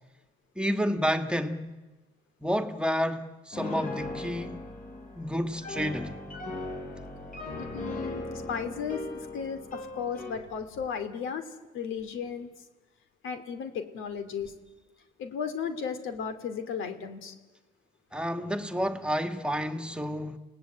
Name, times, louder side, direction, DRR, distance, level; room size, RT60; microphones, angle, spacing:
voice 1, 0.6-1.8 2.4-4.6 5.2-6.2 18.1-20.4, equal, 5° right, 1.8 m, -30 dB
Piano, 3.5-10.5, left 2 dB, 40° left, 6.4 m, -38 dB
voice 2, 7.6-11.4 11.7-12.5 13.2-14.5 15.2-17.3, left 6 dB, 85° left, 2.7 m, -35 dB
29.0 x 18.0 x 8.9 m
cardioid pair, 90°, 20 cm